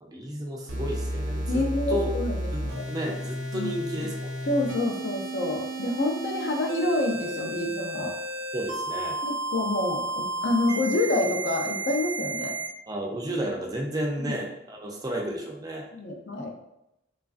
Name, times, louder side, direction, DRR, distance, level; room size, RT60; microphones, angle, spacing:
voice 1, 0.0-2.2 2.5-2.6 2.9-4.4 8.5-9.2 12.9-15.9, right 1 dB, 20° right, 0 dB, 0.4 m, -32 dB
sound 1, 0.7-12.7, right 2 dB, 65° right, 0.6 m, -32 dB
voice 2, 1.4-2.9 3.5-3.7 4.5-8.1 9.2-12.5 14.2-14.4 15.9-16.5, left 2 dB, 60° left, 2 dB, 0.5 m, -28 dB
3.1 x 2.4 x 2.4 m, 0.87 s
head